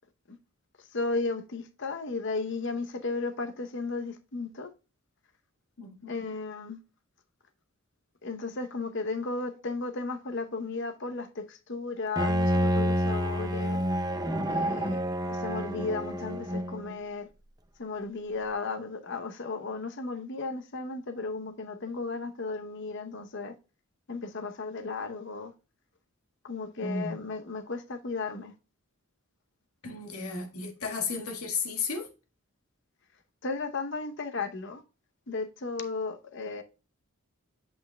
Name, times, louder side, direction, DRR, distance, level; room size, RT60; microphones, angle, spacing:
voice 1, 0.9-4.7 6.1-6.8 8.2-13.8 14.5-15.0 15.3-17.3 17.8-23.5 24.1-25.5 26.4-28.5 33.4-34.8 35.3-36.6, left 3 dB, 55° left, 0.8 m, -34 dB
voice 2, 5.8-6.1 26.8-27.2 29.8-32.1, left 4 dB, 85° left, 1.5 m, -33 dB
Bowed string instrument, 12.2-16.9, equal, 20° right, 0.6 m, -28 dB
8.1 x 6.4 x 2.2 m
head